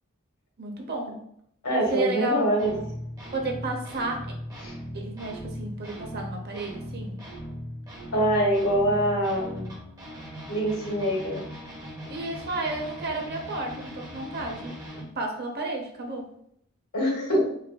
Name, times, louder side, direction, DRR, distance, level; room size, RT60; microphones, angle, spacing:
voice 1, 0.6-1.2 1.9-2.9 3.3-4.3 4.9-7.2 12.1-16.3, right 2 dB, 45° right, 1 dB, 0.7 m, -32 dB
voice 2, 1.6-2.7 4.6-4.7 8.1-9.7 10.5-11.4 16.9-17.4, equal, 80° left, -2 dB, 1.4 m, -24 dB
sound 1, 2.6-15.0, equal, 15° right, 1.0 m, -39 dB
4.8 x 2.5 x 2.2 m, 0.70 s
head